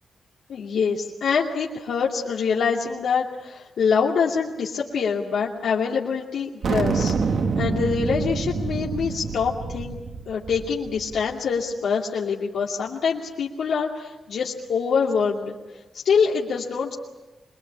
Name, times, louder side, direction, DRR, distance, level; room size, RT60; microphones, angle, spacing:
voice 1, 0.5-7.1 7.6-10.0 10.3-15.5 15.9-16.9, left 6 dB, 80° left, -4 dB, 2.6 m, -25 dB
sound 1, 6.6-11.3, right 4 dB, 55° right, 1.5 m, -27 dB
25.0 x 22.5 x 8.7 m, 1.1 s
wide cardioid pair, 160°, 0 cm